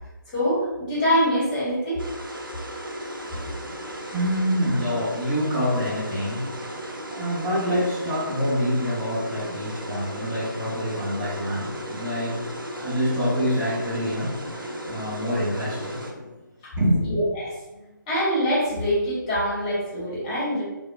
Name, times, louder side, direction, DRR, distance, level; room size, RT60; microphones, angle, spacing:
voice 1, 0.3-2.0 16.6-16.7 17.1-20.6, equal, 20° left, -9 dB, 1.2 m, -24 dB
sound 1, 2.0-16.1, equal, 85° right, 0.5 m, -36 dB
voice 2, 3.3-16.3 16.7-17.1, equal, 15° right, -13 dB, 0.8 m, -27 dB
3.4 x 2.2 x 2.3 m, 1.1 s
figure-of-eight pair, 145°, 11 cm